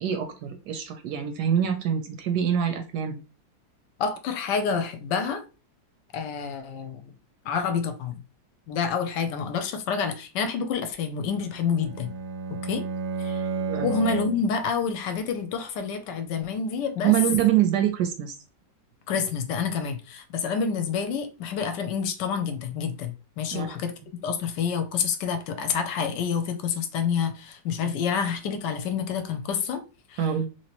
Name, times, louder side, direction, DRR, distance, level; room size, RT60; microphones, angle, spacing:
voice 1, 0.0-3.1 13.7-13.9 17.0-18.4 23.5-23.7 30.2-30.5, right 10 dB, 75° right, 1.0 m, -25 dB
voice 2, 4.0-5.4 6.1-7.1 7.4-8.2 8.7-12.1 12.5-12.9 13.2-13.4 13.8-17.1 19.1-23.9 24.2-29.8 30.1-30.2, left 6 dB, 75° left, 1.2 m, -28 dB
Bowed string instrument, 11.4-14.6, right 5 dB, 90° right, 1.4 m, -32 dB
3.1 x 3.0 x 2.8 m
omnidirectional pair, 2.0 m